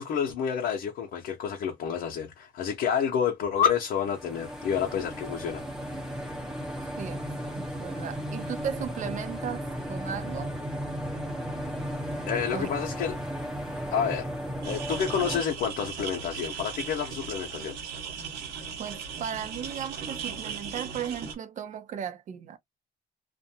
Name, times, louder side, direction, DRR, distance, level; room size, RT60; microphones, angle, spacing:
voice 1, 0.0-6.0 12.3-13.2 13.9-14.3 14.6-17.8, left 7 dB, 65° left, 0.7 m, -29 dB
sound 1, 4.0-15.4, equal, 5° right, 0.8 m, -35 dB
voice 2, 7.0-7.3 7.6-10.6 12.5-12.7 18.8-22.6, right 8 dB, 50° right, 0.6 m, -36 dB
sound 2, 14.6-21.3, right 6 dB, 85° right, 1.0 m, -37 dB
2.5 x 2.1 x 2.7 m
cardioid pair, 110°, 17 cm